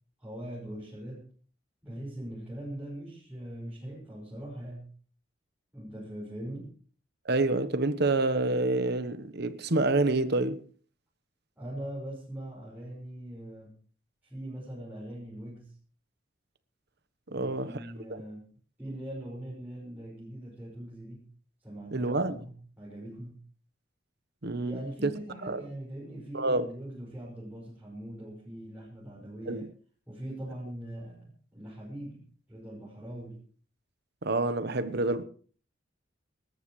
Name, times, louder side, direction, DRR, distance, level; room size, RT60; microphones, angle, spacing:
voice 1, 0.2-1.3 1.8-4.9 5.7-6.8 11.6-13.7 14.2-15.8 17.3-18.5 18.8-21.3 21.6-23.4 24.6-29.7 30.1-33.4, right 1 dB, 10° right, 5.6 m, -41 dB
voice 2, 7.2-10.6 17.3-17.8 18.1-18.2 21.9-22.4 24.4-25.1 25.4-25.6 26.3-26.7 29.5-29.7 34.2-35.2, right 2 dB, 55° right, 1.1 m, -28 dB
25.5 x 13.5 x 3.2 m
head